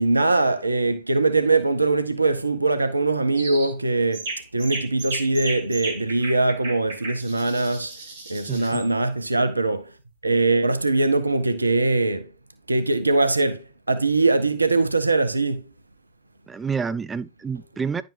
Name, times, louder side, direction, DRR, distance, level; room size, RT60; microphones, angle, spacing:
voice 1, 0.0-4.3 4.5-7.9 8.3-9.9 10.2-12.3 12.7-15.6, right 3 dB, 80° right, 0.6 m, -22 dB
sound 1, 3.4-3.7 4.1-8.9, right 2 dB, 65° right, 1.9 m, -34 dB
voice 2, 8.5-8.8 16.5-18.0, right 5 dB, 15° right, 0.5 m, -29 dB
10.5 x 5.1 x 2.6 m
figure-of-eight pair, 90°, 0 cm